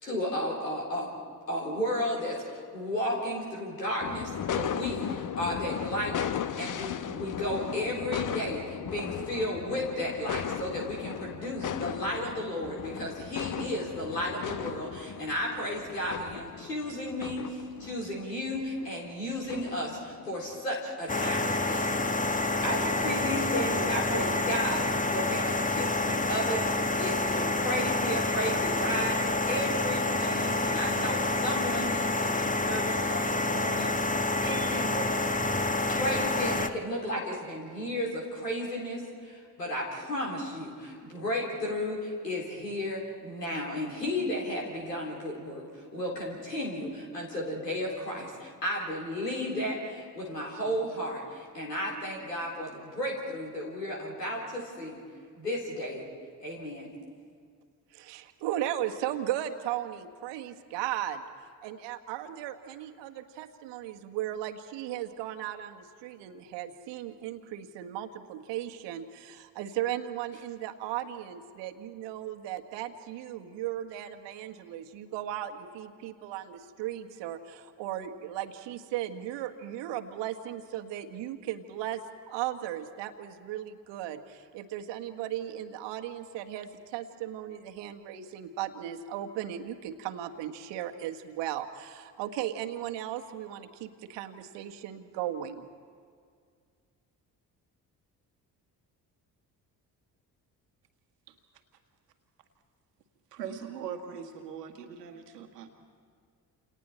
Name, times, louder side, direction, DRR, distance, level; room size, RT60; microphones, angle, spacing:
voice 1, 0.0-1.1 1.5-22.2 22.6-33.9 34.4-35.1 35.9-45.6 45.9-55.0 55.3-56.0 56.4-56.9, equal, 85° left, -3 dB, 3.8 m, -33 dB
sound 1, 4.0-20.6, left 9 dB, 40° left, 0.9 m, -37 dB
sound 2, 21.1-36.7, left 2 dB, 15° left, 1.2 m, -28 dB
voice 2, 57.9-61.2 61.6-82.0 82.3-95.7, right 12 dB, 60° right, 6 dB, 1.5 m, -36 dB
voice 3, 103.3-105.7, right 7 dB, 80° right, 6 dB, 1.7 m, -41 dB
29.5 x 28.0 x 4.4 m, 2.1 s
figure-of-eight pair, 45°, 48 cm